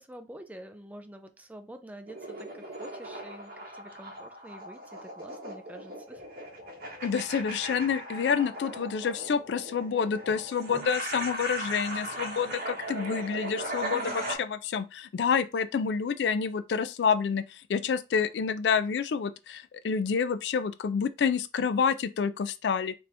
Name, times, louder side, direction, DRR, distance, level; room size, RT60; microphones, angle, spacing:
voice 1, 0.0-6.2 10.6-10.9 13.9-14.3, right 1 dB, 10° right, 0.4 m, -47 dB
sound 1, 2.1-14.4, right 1 dB, 60° right, 1.3 m, -38 dB
voice 2, 7.0-22.9, left 6 dB, 70° left, 0.3 m, -28 dB
4.0 x 2.7 x 3.3 m
head